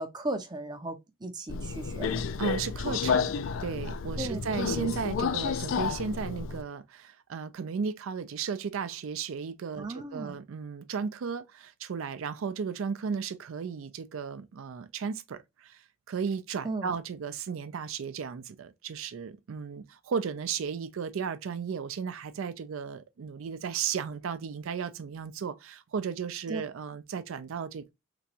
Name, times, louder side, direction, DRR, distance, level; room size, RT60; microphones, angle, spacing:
voice 1, 0.0-2.2 4.2-4.4 9.8-10.4 16.6-16.9 26.5-26.6, right 2 dB, 20° right, 0.5 m, -36 dB
Subway metro underground, 1.5-6.6, left 5 dB, 70° left, 0.3 m, -31 dB
voice 2, 2.4-3.3 3.6-27.9, right 6 dB, 75° right, 0.4 m, -35 dB
3.4 x 3.0 x 2.7 m
head